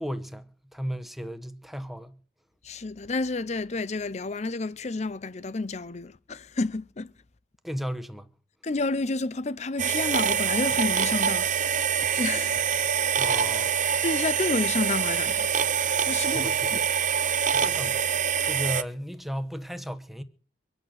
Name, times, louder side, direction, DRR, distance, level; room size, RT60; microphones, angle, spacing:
voice 1, 0.0-2.2 7.6-8.3 13.2-13.7 16.3-16.8 17.5-20.2, equal, ahead, 1.0 m, -35 dB
voice 2, 2.6-7.1 8.6-11.8 12.1-12.8 13.0-13.3 14.0-15.5 16.1-16.8, left 3 dB, 40° left, 0.6 m, -30 dB
sound 1, 9.8-18.8, right 7 dB, 45° right, 0.7 m, -25 dB
24.0 x 8.9 x 6.5 m
head